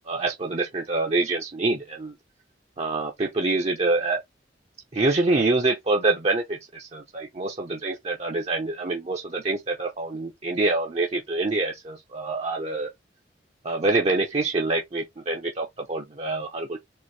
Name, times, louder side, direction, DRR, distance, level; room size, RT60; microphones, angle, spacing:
voice 1, 0.1-2.1 2.8-4.2 4.9-12.9 13.6-16.8, right 2 dB, 35° right, 0.7 m, -26 dB
4.4 x 2.8 x 3.2 m
head